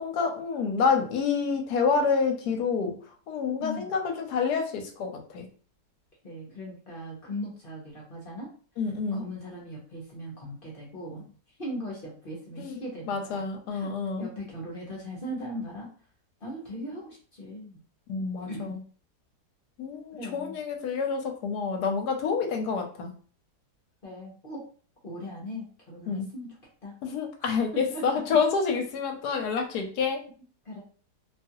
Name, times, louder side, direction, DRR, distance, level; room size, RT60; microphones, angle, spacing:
voice 1, 0.0-5.5 8.8-9.2 12.6-14.3 18.1-18.8 19.8-23.1 26.1-26.3 27.0-30.2, left 5 dB, 75° left, 4 dB, 1.2 m, -28 dB
voice 2, 3.6-3.9 6.2-8.5 9.1-11.2 11.6-13.4 13.7-13.9 14.2-15.9 16.4-17.8 18.5-18.8 20.1-20.6 24.0-24.6 25.0-26.5 26.8-26.9 27.7-28.4 30.6-30.8, equal, 45° left, -4 dB, 0.8 m, -39 dB
2.9 x 2.4 x 2.7 m, 0.42 s
omnidirectional pair, 1.8 m